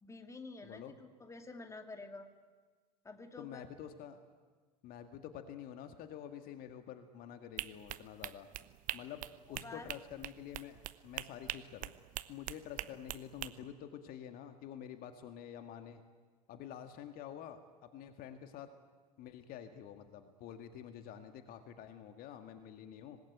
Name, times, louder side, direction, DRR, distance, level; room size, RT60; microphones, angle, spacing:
voice 1, 0.0-2.3 3.0-3.7 9.6-9.9 12.8-12.9, left 3 dB, 15° left, 6 dB, 2.5 m, -49 dB
voice 2, 0.6-0.9 3.4-4.2 4.8-8.5 8.9-11.9 12.3-16.0 16.5-18.7 19.2-23.2, left 9 dB, 45° left, 8 dB, 1.9 m, -48 dB
sound 1, 7.6-13.5, right 14 dB, 40° right, 1.0 m, -43 dB
25.0 x 20.0 x 9.2 m, 1.4 s
figure-of-eight pair, 75°, 20 cm